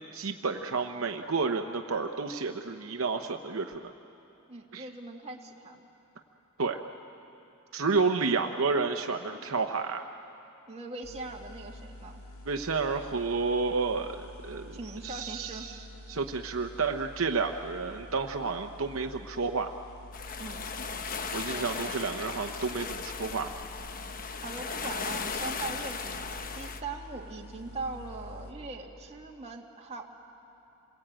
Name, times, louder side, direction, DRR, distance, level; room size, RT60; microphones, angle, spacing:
voice 1, 0.0-3.9 4.7-4.9 6.6-6.8 7.7-10.1 12.5-14.2 14.4-14.8 15.0-15.8 16.1-19.7 21.3-23.5, right 4 dB, 65° right, 5 dB, 0.9 m, -30 dB
voice 2, 4.5-5.9 8.4-8.5 10.7-12.2 14.7-15.7 20.4-20.7 21.5-21.7 24.4-30.1, right 3 dB, 30° right, 0 dB, 2.1 m, -41 dB
sound 1, 11.0-28.5, left 1 dB, 85° left, 2.4 m, -48 dB
sound 2, 20.1-26.8, left 5 dB, 40° left, 0.9 m, -37 dB
28.0 x 21.5 x 8.9 m, 2.9 s
head